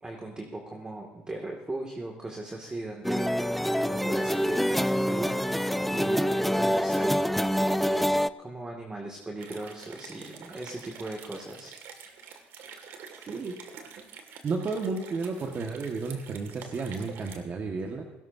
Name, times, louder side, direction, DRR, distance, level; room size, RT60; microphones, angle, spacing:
voice 1, 0.0-5.5 5.9-8.1 8.4-11.7, right 2 dB, 20° right, 1 dB, 2.3 m, -38 dB
sound 1, 3.0-8.3, equal, ahead, 0.5 m, -26 dB
sound 2, 9.4-17.4, right 6 dB, 65° right, 2.2 m, -47 dB
voice 2, 13.3-13.6 14.4-18.0, right 4 dB, 40° right, 2 dB, 1.7 m, -32 dB
18.5 x 17.0 x 2.8 m, 1.1 s
hypercardioid pair, 65°, 4 cm